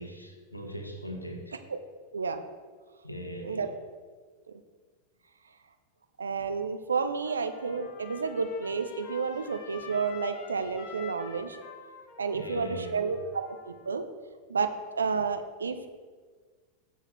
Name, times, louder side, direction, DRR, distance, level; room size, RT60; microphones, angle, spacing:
voice 1, 0.0-1.6 3.0-3.7 12.3-13.1, equal, 85° left, 4 dB, 1.3 m, -40 dB
voice 2, 6.2-11.6 12.2-14.1 14.5-14.7 15.0-15.9, right 5 dB, 75° right, 8 dB, 0.7 m, -31 dB
Trumpet, 7.2-13.9, left 6 dB, 45° left, 1.3 m, -47 dB
15.0 x 6.5 x 3.2 m, 1.5 s
figure-of-eight pair, 90°, 0 cm